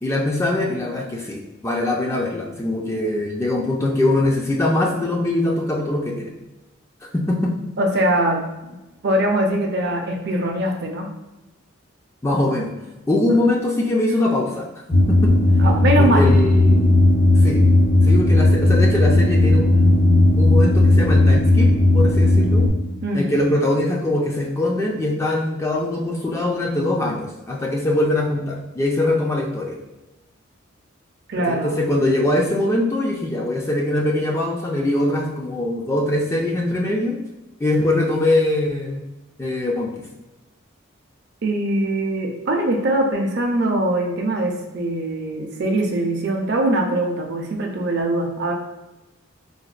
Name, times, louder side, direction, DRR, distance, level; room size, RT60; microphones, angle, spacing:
voice 1, 0.0-6.3 7.0-7.6 12.2-12.7 13.1-15.3 16.0-16.9 17.4-17.6 18.0-22.7 23.1-29.8 31.3-37.2 37.6-39.0 39.4-40.0, left 1 dB, 15° left, -1 dB, 0.3 m, -22 dB
voice 2, 7.8-8.7 9.0-11.1 15.6-16.3 23.0-23.3 31.3-31.9 41.4-48.5, right 1 dB, 50° right, 2 dB, 0.5 m, -22 dB
sound 1, 14.9-22.7, left 1 dB, 45° left, 0.6 m, -15 dB
4.0 x 2.1 x 2.4 m, 1.0 s
head